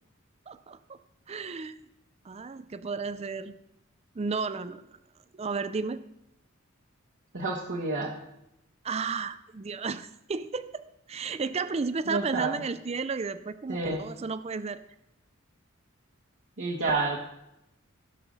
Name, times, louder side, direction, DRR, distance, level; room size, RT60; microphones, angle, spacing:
voice 1, 0.5-0.8 1.3-1.8 2.2-3.5 4.2-4.9 5.3-6.0 8.8-10.8 11.1-14.8, right 4 dB, 30° right, 13 dB, 0.4 m, -33 dB
voice 2, 7.3-8.1 12.1-12.6 13.7-14.0 16.6-17.2, right 3 dB, 60° right, -4 dB, 1.5 m, -29 dB
16.5 x 5.9 x 5.3 m, 0.85 s
head